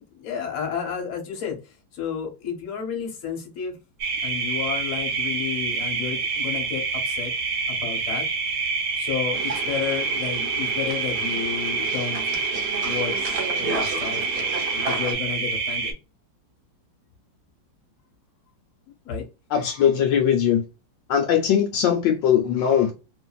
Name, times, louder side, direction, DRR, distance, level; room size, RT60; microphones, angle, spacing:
voice 1, 0.1-3.8 4.2-7.3 7.7-8.3 9.0-12.4 12.8-16.0 19.0-19.2, left 7 dB, 50° left, 1.1 m, -32 dB
sound 1, 4.0-15.9, right 4 dB, 90° right, 1.5 m, -27 dB
sound 2, 9.3-15.1, right 4 dB, 60° right, 0.7 m, -33 dB
voice 2, 19.5-20.6 21.1-22.9, left 9 dB, 75° left, 1.2 m, -20 dB
2.8 x 2.6 x 2.2 m
omnidirectional pair, 2.1 m